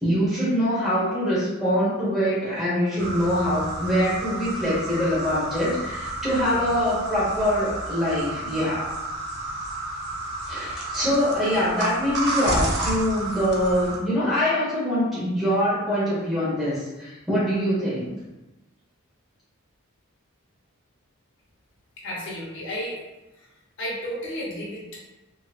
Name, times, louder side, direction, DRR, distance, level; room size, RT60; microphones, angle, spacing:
voice 1, 0.0-8.9 10.5-18.1, equal, ahead, -10 dB, 1.2 m, -24 dB
sound 1, 3.0-14.0, right 1 dB, 50° right, 0.6 m, -31 dB
voice 2, 22.0-23.0 23.3-23.5 23.8-25.0, equal, 55° left, -5 dB, 0.7 m, -33 dB
2.9 x 2.9 x 2.4 m, 1.1 s
head